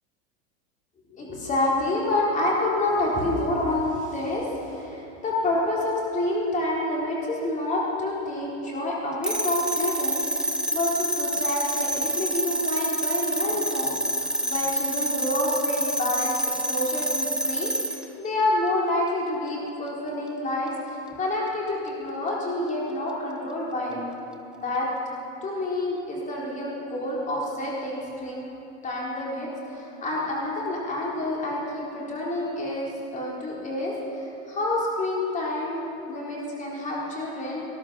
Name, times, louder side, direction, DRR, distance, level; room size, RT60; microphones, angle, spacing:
voice 1, 1.1-24.1 24.5-24.9 25.4-28.4 28.8-37.7, left 1 dB, 25° left, -4 dB, 3.9 m, -28 dB
sound 1, 9.2-18.0, right 1 dB, ahead, 0.8 m, -27 dB
19.0 x 12.0 x 6.1 m, 2.8 s
supercardioid pair, 140°, 33 cm